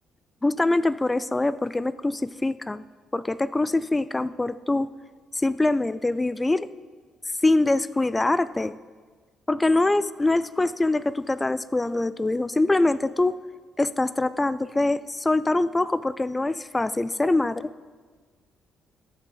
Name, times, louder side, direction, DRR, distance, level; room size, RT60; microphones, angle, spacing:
voice 1, 0.4-2.8 3.1-4.9 5.3-6.7 7.4-8.7 9.5-13.4 13.8-17.7, left 2 dB, 15° left, 16 dB, 0.3 m, -24 dB
13.5 x 7.5 x 3.9 m, 1.5 s
cardioid pair, 90°, 0 cm